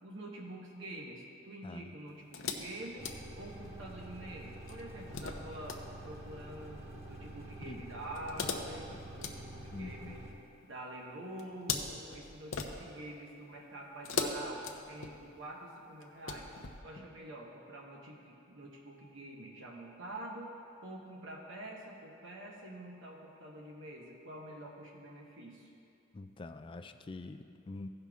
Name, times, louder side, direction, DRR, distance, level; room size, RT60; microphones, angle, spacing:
voice 1, 0.0-10.2 10.6-25.7, right 1 dB, 65° right, -2 dB, 1.2 m, -47 dB
voice 2, 1.6-1.9 7.7-7.8 9.7-10.2 17.0-17.1 26.1-27.9, left 2 dB, 25° left, 8 dB, 0.3 m, -45 dB
sound 1, 2.3-3.8 4.7-5.8 8.2-10.3 11.4-13.1 14.0-15.4 16.0-16.8, left 5 dB, 75° left, 0.7 m, -40 dB
sound 2, 3.0-10.3, right 1 dB, 15° right, 1.5 m, -48 dB
16.0 x 5.6 x 3.6 m, 2.6 s
head